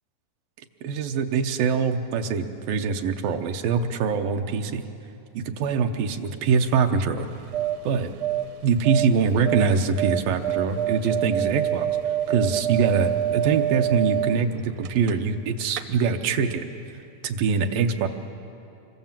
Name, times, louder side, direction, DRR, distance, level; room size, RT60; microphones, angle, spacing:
voice 1, 0.8-4.8 5.3-7.3 7.8-8.1 8.6-11.9 12.3-16.7 17.2-18.1, right 5 dB, 90° right, 5 dB, 2.8 m, -23 dB
sound 1, 7.2-15.4 15.7-15.8, right 11 dB, 70° right, 1.7 m, -27 dB
26.0 x 23.0 x 7.4 m, 2.8 s
omnidirectional pair, 3.9 m